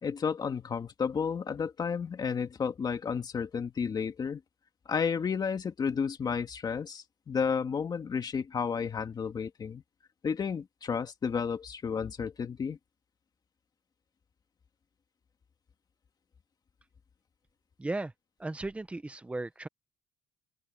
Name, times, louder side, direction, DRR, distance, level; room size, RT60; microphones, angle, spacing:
voice 1, 0.0-4.4 4.9-9.8 10.2-12.8, left 6 dB, 25° left, 1.9 m, -32 dB
voice 2, 17.8-18.1 18.4-19.7, right 2 dB, 10° right, 0.9 m, -36 dB
open air
cardioid pair, 160°, 15 cm